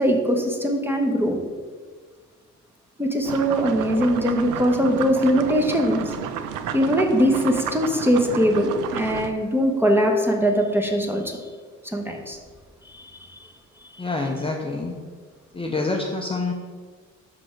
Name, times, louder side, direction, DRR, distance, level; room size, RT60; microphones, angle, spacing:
voice 1, 0.0-1.4 3.0-6.1 6.7-11.4 11.9-12.4 12.8-13.1, equal, 5° right, 2 dB, 1.0 m, -21 dB
sound 1, 3.2-9.3, right 8 dB, 90° right, 0.5 m, -32 dB
voice 2, 14.0-14.9 15.5-16.5, left 3 dB, 20° left, 1 dB, 0.7 m, -26 dB
6.2 x 5.2 x 4.5 m, 1.5 s
cardioid pair, 90°, 30 cm